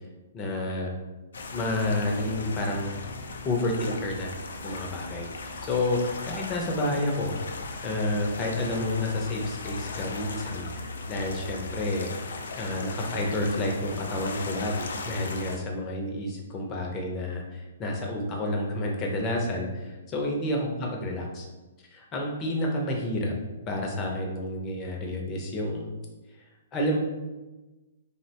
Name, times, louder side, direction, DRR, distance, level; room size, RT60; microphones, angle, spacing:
voice 1, 0.3-0.9 1.5-3.0 3.4-4.3 4.6-7.4 7.8-12.1 12.5-21.5 21.9-23.3 23.7-25.9 26.7-27.0, left 1 dB, 20° left, 0 dB, 0.5 m, -30 dB
sound 1, 1.3-15.6, left 3 dB, 80° left, 0.3 m, -38 dB
2.8 x 2.1 x 2.8 m, 1.1 s
hypercardioid pair, 155°, 0 cm